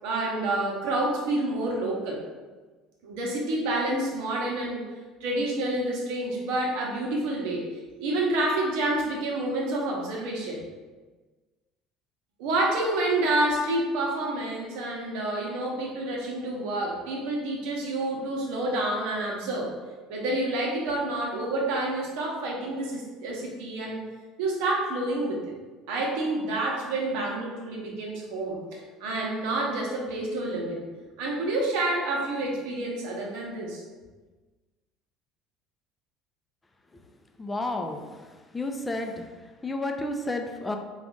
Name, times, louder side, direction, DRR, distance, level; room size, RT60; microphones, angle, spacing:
voice 1, 0.0-2.2 3.0-4.8 5.2-7.7 8.0-10.6 12.4-19.7 20.1-24.0 24.4-25.5 25.9-30.9 31.2-33.8, right 2 dB, 75° right, -1 dB, 0.9 m, -28 dB
voice 2, 37.4-38.0 38.5-39.1 39.6-40.8, left 2 dB, 15° left, 4 dB, 0.5 m, -30 dB
3.9 x 2.4 x 3.7 m, 1.3 s
supercardioid pair, 80°, 0 cm